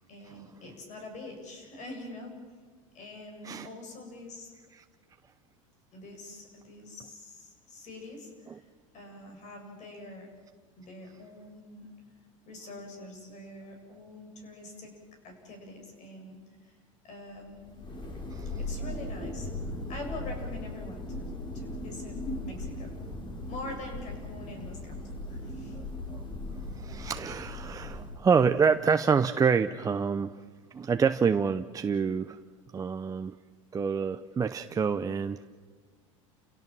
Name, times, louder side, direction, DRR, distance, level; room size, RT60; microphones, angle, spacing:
voice 1, 0.1-2.4 2.9-4.5 5.9-10.3 10.8-11.9 12.5-14.9 15.2-16.8 17.0-17.6 18.6-22.2 22.4-23.1 23.5-25.0 25.3-25.8, left 2 dB, 45° left, 4 dB, 7.9 m, -45 dB
Thunder, 17.5-28.5, left 2 dB, 30° left, 4.1 m, -38 dB
voice 2, 25.7-26.2 26.7-30.4 30.7-32.4 32.7-33.4 33.7-35.4, right 6 dB, 20° right, 8 dB, 0.7 m, -27 dB
29.5 x 17.5 x 7.6 m, 1.4 s
supercardioid pair, 105°, 17 cm